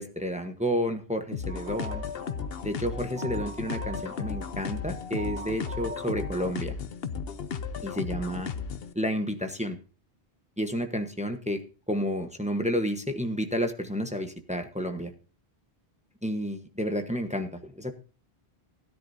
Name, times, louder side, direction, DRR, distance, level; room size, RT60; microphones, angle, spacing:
voice 1, 0.0-2.0 2.6-6.7 7.8-8.5 8.9-9.8 10.6-11.6 11.9-15.1 16.2-17.9, equal, 5° right, 6 dB, 1.0 m, -30 dB
sound 1, 1.3-8.9, left 6 dB, 65° left, 1.0 m, -35 dB
sound 2, 1.5-6.6, right 2 dB, 30° left, 2.5 m, -43 dB
16.5 x 10.5 x 2.7 m, 0.35 s
omnidirectional pair, 1.1 m